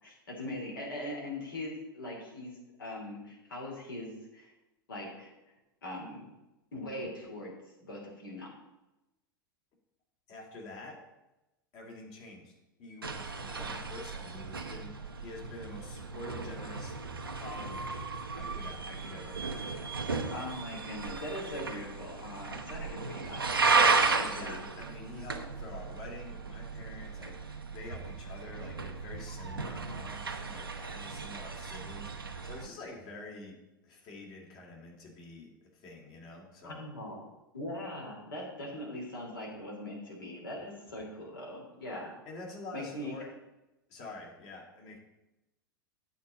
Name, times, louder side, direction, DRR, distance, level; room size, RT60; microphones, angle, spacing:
voice 1, 0.0-4.5 4.9-5.3 5.8-6.2 6.7-7.5 7.8-8.5 13.6-13.7 20.3-23.5 24.2-24.6 36.6-37.2 37.5-42.1 42.7-43.1, left 1 dB, 70° left, -2 dB, 2.8 m, -41 dB
voice 2, 10.3-11.0 11.7-12.5 12.8-16.9 17.3-18.0 18.3-20.1 23.8-33.6 33.8-36.8 42.3-43.3 43.9-45.0, left 2 dB, 40° left, 0 dB, 2.5 m, -47 dB
sound 1, 13.0-32.7, right 4 dB, 80° right, 0.7 m, -34 dB
8.4 x 4.2 x 7.1 m, 0.99 s
figure-of-eight pair, 90°, 12 cm